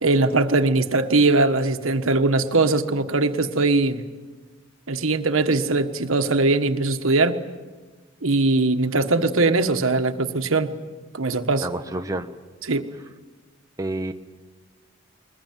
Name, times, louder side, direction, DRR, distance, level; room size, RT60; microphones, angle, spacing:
voice 1, 0.0-4.0 4.9-7.4 8.2-10.7 11.1-11.7 12.7-12.9, right 3 dB, 85° right, 7 dB, 1.4 m, -21 dB
voice 2, 11.6-12.3 13.8-14.1, right 2 dB, 15° right, 5 dB, 0.9 m, -28 dB
22.0 x 20.5 x 9.3 m, 1.3 s
head